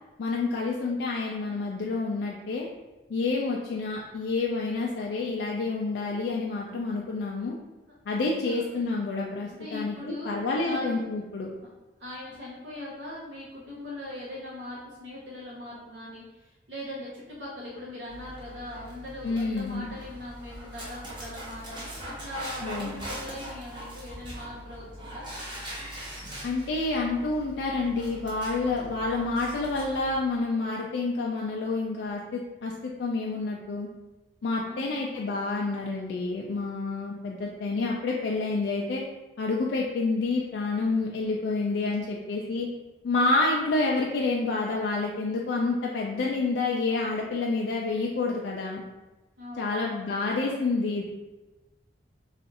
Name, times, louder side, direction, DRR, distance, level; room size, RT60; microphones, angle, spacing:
voice 1, 0.2-2.7 3.1-7.6 8.1-11.5 19.2-19.9 22.6-23.0 26.4-33.9 34.4-39.0 39.4-42.7 43.0-48.8 49.6-51.0, left 3 dB, 70° left, -2 dB, 0.3 m, -28 dB
voice 2, 8.5-8.8 9.5-11.1 12.0-25.3 34.6-35.0 49.4-50.1, left 1 dB, 80° right, -6 dB, 0.8 m, -40 dB
Dog, 18.1-30.2, equal, 25° right, 0.8 m, -41 dB
2.5 x 2.4 x 4.0 m, 1.1 s
head